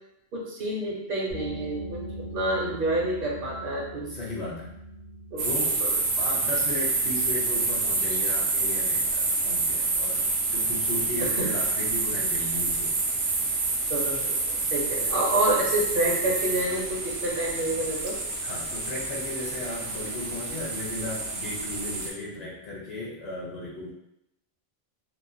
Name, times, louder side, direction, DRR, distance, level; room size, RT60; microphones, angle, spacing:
voice 1, 0.3-4.2 5.3-5.5 5.8-5.9 11.2-11.5 13.9-18.2, right 1 dB, 60° right, -3 dB, 0.8 m, -28 dB
sound 1, 1.3-12.7, equal, 70° left, 1.3 m, -43 dB
voice 2, 4.1-4.7 5.4-10.2 10.5-12.9 14.9-15.1 18.4-23.9, left 1 dB, 45° left, -5 dB, 0.6 m, -36 dB
sound 2, 5.4-22.1, right 3 dB, 90° right, 0.9 m, -28 dB
3.0 x 2.1 x 2.5 m, 0.81 s
omnidirectional pair, 1.0 m